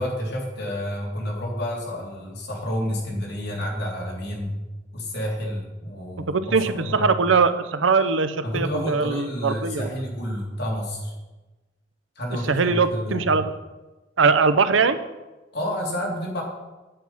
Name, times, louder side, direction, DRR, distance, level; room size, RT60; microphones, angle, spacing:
voice 1, 0.0-4.5 4.9-7.1 8.4-11.1 12.2-13.3 15.5-16.4, equal, 60° left, -2 dB, 3.1 m, -29 dB
voice 2, 6.3-9.9 12.5-13.4 14.2-15.0, right 4 dB, 85° right, 11 dB, 0.7 m, -21 dB
9.0 x 8.6 x 5.6 m, 1.1 s
head